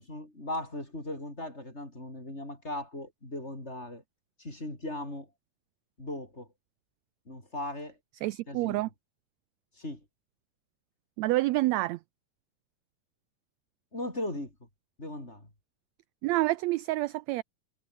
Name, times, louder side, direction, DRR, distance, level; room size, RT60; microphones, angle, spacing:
voice 1, 0.0-4.0 4.4-5.3 6.0-6.5 7.3-8.0 8.5-8.8 9.8-10.0 13.9-14.5 15.0-15.5, left 1 dB, 20° left, 6.5 m, -38 dB
voice 2, 8.2-8.9 11.2-12.0 16.2-17.4, right 19 dB, 80° right, 1.6 m, -28 dB
omnidirectional pair, 3.6 m